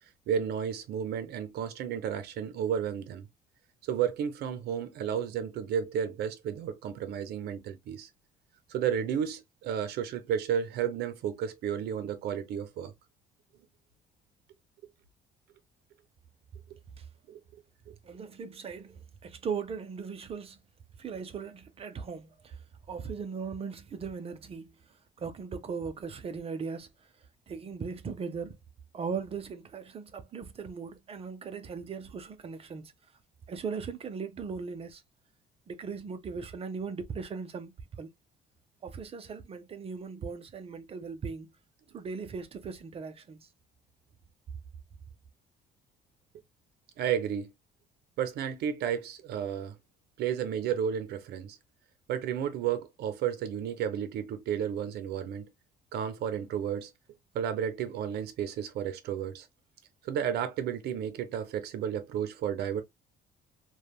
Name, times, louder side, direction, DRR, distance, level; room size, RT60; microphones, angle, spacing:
voice 1, 0.3-3.3 3.8-8.1 8.7-12.9 16.7-16.8 17.3-18.0 47.0-47.5 48.2-49.7 50.2-51.6 52.1-55.5 55.9-56.9 57.3-59.5 60.0-62.8, right 8 dB, 70° right, 0.7 m, -32 dB
voice 2, 18.0-20.6 21.0-22.6 22.9-24.7 25.2-26.9 27.5-28.6 28.9-32.9 33.5-35.0 35.7-38.1 38.8-41.5 41.9-43.5, right 5 dB, 35° right, 0.6 m, -38 dB
3.2 x 2.3 x 2.3 m
cardioid pair, 110°, 17 cm